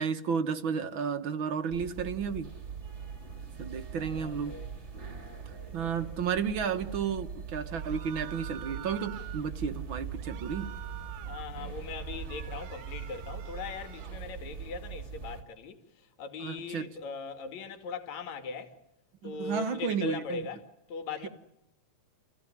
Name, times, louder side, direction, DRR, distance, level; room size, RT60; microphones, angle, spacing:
voice 1, 0.0-2.5 3.6-4.6 5.7-10.7 16.4-16.9 19.2-20.4 21.2-21.3, right 6 dB, 55° right, 1.7 m, -32 dB
sound 1, 1.7-15.4, right 6 dB, 25° right, 1.9 m, -41 dB
voice 2, 4.0-4.7 5.0-6.2 11.3-18.7 19.2-21.3, left 4 dB, 70° left, 3.5 m, -40 dB
sound 2, 7.7-9.5 10.1-11.5 11.9-14.2, right 13 dB, 80° right, 2.5 m, -47 dB
29.5 x 16.5 x 10.0 m
omnidirectional pair, 3.4 m